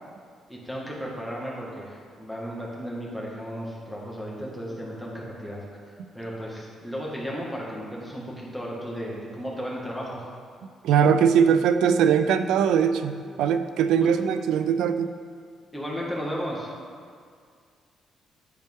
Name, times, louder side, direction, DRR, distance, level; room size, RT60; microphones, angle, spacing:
voice 1, 0.5-5.6 6.1-10.3 14.0-14.1 15.7-16.7, equal, ahead, -5 dB, 1.8 m, -34 dB
voice 2, 10.8-15.1, right 7 dB, 85° right, 10 dB, 0.4 m, -21 dB
10.5 x 4.3 x 3.6 m, 2.1 s
cardioid pair, 90°, 0 cm